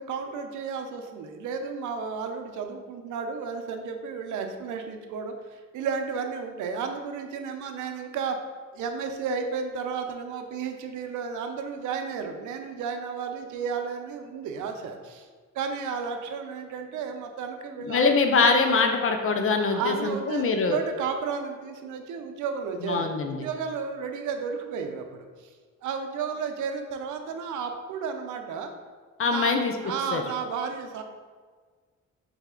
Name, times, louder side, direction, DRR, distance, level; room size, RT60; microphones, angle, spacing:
voice 1, 0.0-8.4 8.7-15.3 15.5-18.1 19.4-25.5 25.8-28.7 29.3-31.0, right 6 dB, 75° right, 5 dB, 0.6 m, -33 dB
voice 2, 17.8-20.8 22.8-23.5 29.2-29.7 30.1-30.2, left 4 dB, 45° left, 5 dB, 0.5 m, -23 dB
4.0 x 3.4 x 3.7 m, 1.5 s
cardioid pair, 90°, 30 cm